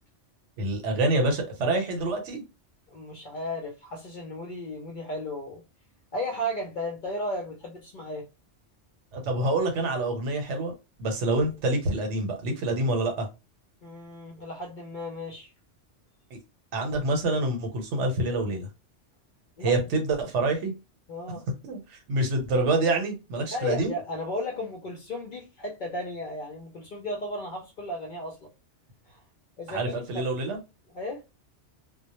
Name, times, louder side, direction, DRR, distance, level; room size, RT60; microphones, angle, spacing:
voice 1, 0.6-2.4 9.1-10.7 11.0-13.3 16.3-16.4 16.7-18.7 19.6-20.7 21.3-21.4 21.6-23.9 29.7-30.6, right 2 dB, 75° right, 1.0 m, -27 dB
voice 2, 2.9-5.6 6.1-8.3 13.8-15.5 19.6-19.8 21.1-21.4 23.5-28.5 29.1-29.2 29.6-30.3 30.9-31.2, left 1 dB, 60° left, 0.5 m, -35 dB
2.1 x 2.1 x 2.9 m
omnidirectional pair, 1.2 m